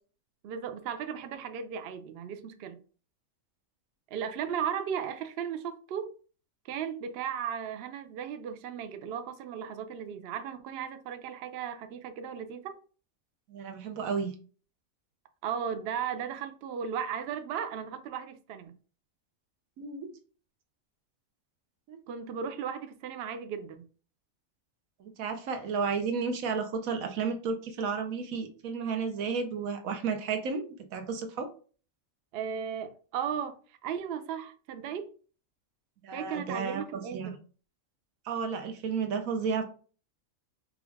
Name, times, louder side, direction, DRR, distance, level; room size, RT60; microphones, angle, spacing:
voice 1, 0.4-2.8 4.1-6.1 6.7-12.7 15.4-18.7 22.1-23.9 32.3-33.6 33.8-35.1 36.1-37.3, right 8 dB, 65° right, 0.6 m, -36 dB
voice 2, 13.5-14.3 19.8-20.1 21.9-22.0 25.0-31.5 36.0-37.3 38.2-39.6, right 5 dB, 80° right, 1.2 m, -32 dB
5.0 x 2.4 x 3.4 m
omnidirectional pair, 1.4 m